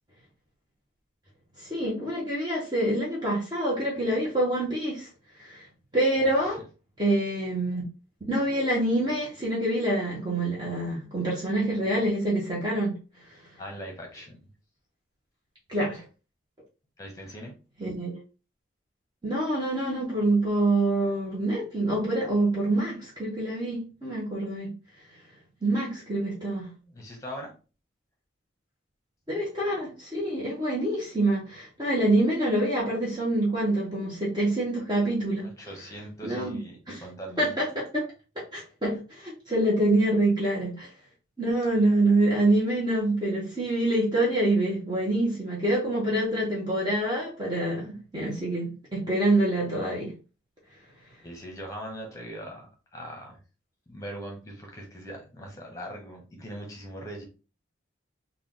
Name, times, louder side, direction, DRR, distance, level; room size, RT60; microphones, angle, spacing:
voice 1, 1.6-5.1 5.4-5.6 5.9-6.6 7.0-7.8 8.3-12.9 15.7-16.0 17.8-18.2 19.2-24.7 25.6-26.7 29.3-35.5 36.2-36.6 36.9-37.0 37.4-38.0 38.5-40.9 41.4-50.1, right 1 dB, 20° right, 1.0 m, -26 dB
voice 2, 6.2-6.6 13.6-14.4 17.0-17.6 26.9-27.5 35.4-37.5 51.2-53.4 53.9-57.2, equal, 15° left, 1.1 m, -41 dB
3.4 x 2.4 x 3.7 m
head